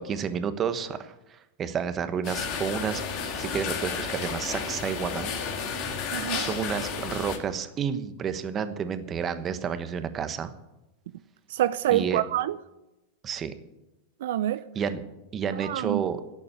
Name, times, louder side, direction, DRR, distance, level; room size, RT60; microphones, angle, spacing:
voice 1, 0.0-3.0 3.4-5.3 5.9-6.1 6.4-10.5 11.9-12.2 13.2-13.5 14.7-15.0 15.3-16.2, right 7 dB, 25° right, 1.1 m, -30 dB
sound 1, 2.2-7.4, left 6 dB, 45° left, 2.3 m, -32 dB
voice 2, 6.1-6.5 11.5-12.6 14.2-14.6 15.6-16.0, right 13 dB, 75° right, 0.5 m, -26 dB
11.5 x 8.5 x 9.8 m
supercardioid pair, 140°, 0 cm